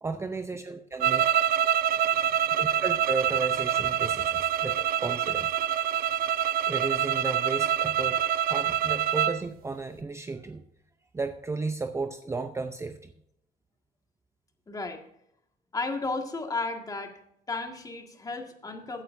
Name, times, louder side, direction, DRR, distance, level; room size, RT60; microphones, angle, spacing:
voice 1, 0.0-1.3 2.1-2.2 2.5-5.6 6.6-10.6 11.1-13.1, right 3 dB, 15° right, 7 dB, 0.6 m, -34 dB
sound 1, 1.0-9.4, right 10 dB, 60° right, 0.5 m, -26 dB
voice 2, 14.7-15.0 15.7-17.2 17.5-19.0, left 3 dB, 20° left, 4 dB, 1.8 m, -33 dB
16.5 x 9.1 x 2.6 m, 0.76 s
cardioid pair, 110°, 17 cm